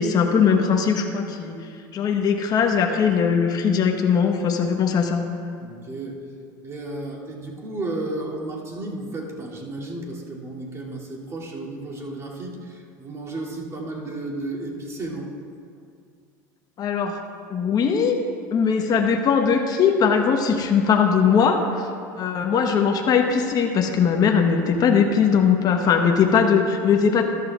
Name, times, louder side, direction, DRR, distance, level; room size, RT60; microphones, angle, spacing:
voice 1, 0.0-1.6 1.9-5.2 16.8-17.2 17.5-18.2 18.5-21.9 22.2-27.2, left 6 dB, 40° left, 3 dB, 1.1 m, -20 dB
voice 2, 5.6-6.2 6.6-15.3, right 2 dB, 30° right, -4 dB, 2.7 m, -33 dB
13.5 x 12.0 x 2.4 m, 2.3 s
hypercardioid pair, 90°, 10 cm